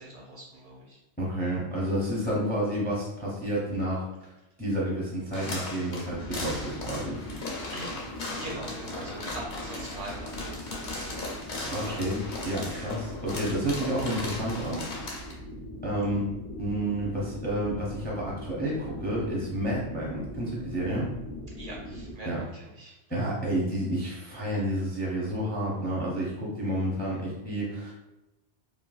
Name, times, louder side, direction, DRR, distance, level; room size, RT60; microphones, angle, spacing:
voice 1, 0.0-1.0 7.7-7.9 8.3-11.3 11.8-12.0 21.6-23.0, right 1 dB, 55° right, -3 dB, 0.7 m, -42 dB
voice 2, 1.2-4.1 4.6-7.2 11.7-15.1 15.8-16.3 16.6-21.1 22.2-22.4 23.1-27.9, right 1 dB, 10° left, -5 dB, 0.4 m, -30 dB
sound 1, 5.3-15.3, left 2 dB, 50° left, 0.7 m, -37 dB
sound 2, 6.1-22.1, equal, 80° left, 0.9 m, -41 dB
3.2 x 2.2 x 2.3 m, 0.95 s
omnidirectional pair, 1.2 m